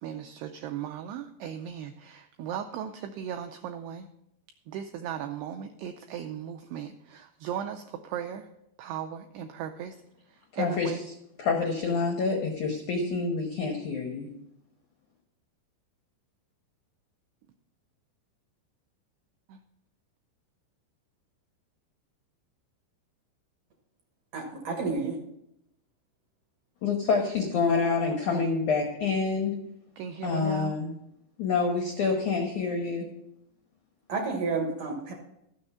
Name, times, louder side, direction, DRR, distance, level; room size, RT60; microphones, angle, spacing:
voice 1, 0.0-4.1 4.7-8.5 8.8-10.0 10.3-11.0 19.5-19.6 28.3-28.4 30.0-30.8, right 9 dB, 85° right, 6 dB, 2.4 m, -37 dB
voice 2, 10.5-10.9 11.4-14.3 26.8-29.6 30.2-30.9 31.4-33.1, left 4 dB, 80° left, 1 dB, 1.7 m, -27 dB
voice 3, 24.3-25.2 34.1-35.1, right 4 dB, 60° right, 1 dB, 2.4 m, -30 dB
13.0 x 6.6 x 5.6 m, 0.79 s
omnidirectional pair, 5.4 m